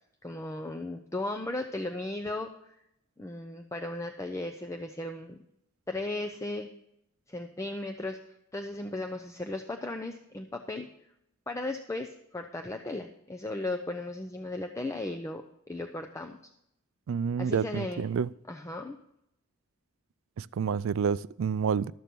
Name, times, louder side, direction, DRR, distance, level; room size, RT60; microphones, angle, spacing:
voice 1, 0.2-2.8 3.2-5.4 5.9-6.7 7.3-8.2 8.5-10.9 11.5-16.4 17.4-18.0 18.5-19.0, left 2 dB, 15° left, 0.5 m, -36 dB
voice 2, 17.1-18.3 20.4-21.9, right 6 dB, 65° right, 0.3 m, -29 dB
12.5 x 6.9 x 5.9 m
head